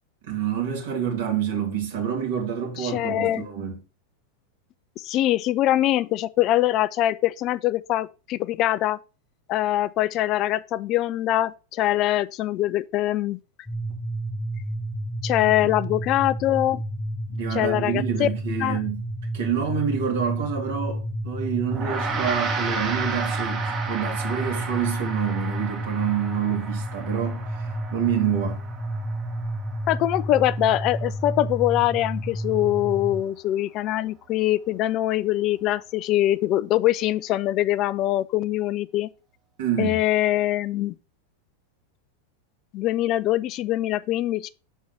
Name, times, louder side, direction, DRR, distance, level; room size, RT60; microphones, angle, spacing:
voice 1, 0.2-3.8 15.4-15.7 17.3-19.0 19.3-27.4 27.9-28.6 39.6-40.0, right 8 dB, 60° right, 2.5 m, -27 dB
voice 2, 2.8-3.5 5.0-9.0 9.5-13.4 15.2-16.8 17.5-18.3 18.6-18.8 29.9-39.1 39.8-41.0 42.7-44.5, left 14 dB, 40° left, 0.4 m, -23 dB
sound 1, 13.7-33.2, right 1 dB, 10° left, 0.7 m, -31 dB
Gong, 21.7-31.2, right 5 dB, 25° right, 1.4 m, -33 dB
6.2 x 4.5 x 5.4 m
figure-of-eight pair, 90°, 0 cm